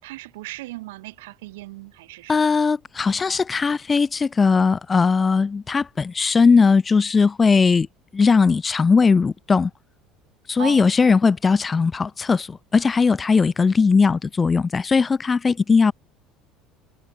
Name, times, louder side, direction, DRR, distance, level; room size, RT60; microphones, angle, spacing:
voice 1, 0.0-2.4 10.6-11.0, right 19 dB, 70° right, 1.3 m, -37 dB
voice 2, 2.3-7.9 8.1-9.7 10.5-15.9, left 5 dB, 25° left, 0.8 m, -19 dB
figure-of-eight pair, 65°, 0 cm